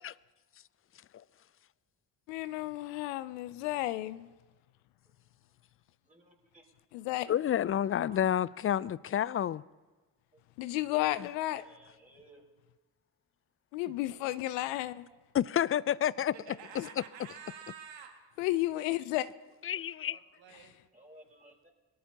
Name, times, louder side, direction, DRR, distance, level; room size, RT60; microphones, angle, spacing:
voice 1, 2.3-4.3 6.9-7.3 10.6-11.6 13.7-15.1 16.8-16.9 18.4-19.3, left 16 dB, 85° left, 0.6 m, -32 dB
voice 2, 6.0-6.6 8.1-8.2 11.6-12.4 15.1-15.2 20.9-21.7, right 1 dB, 15° right, 4.4 m, -57 dB
voice 3, 7.3-9.6 15.3-16.3 19.6-20.2, left 10 dB, 30° left, 0.4 m, -29 dB
voice 4, 16.3-18.1 20.1-20.8, right 7 dB, 70° right, 2.0 m, -49 dB
23.0 x 14.0 x 2.8 m
hypercardioid pair, 45°, 47 cm